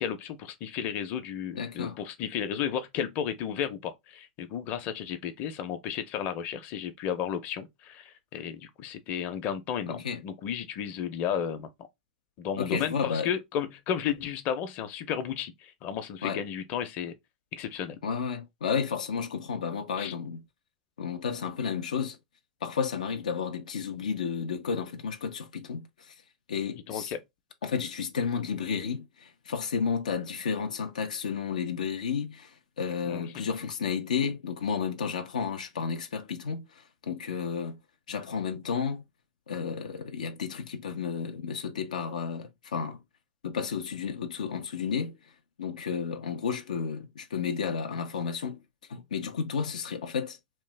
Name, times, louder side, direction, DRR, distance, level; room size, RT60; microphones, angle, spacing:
voice 1, 0.0-11.7 12.4-17.2 17.5-18.0 20.0-20.1 26.9-27.2 33.1-33.4, left 8 dB, 45° left, 0.6 m, -33 dB
voice 2, 1.5-2.0 9.9-10.2 12.6-13.3 16.2-16.4 18.0-20.4 21.0-22.2 22.6-26.2 26.5-27.1 27.6-37.8 38.1-39.0 39.5-43.0 43.4-45.3 45.6-48.6 48.9-50.4, left 6 dB, 90° left, 0.5 m, -32 dB
2.9 x 2.1 x 3.3 m
hypercardioid pair, 110°, 4 cm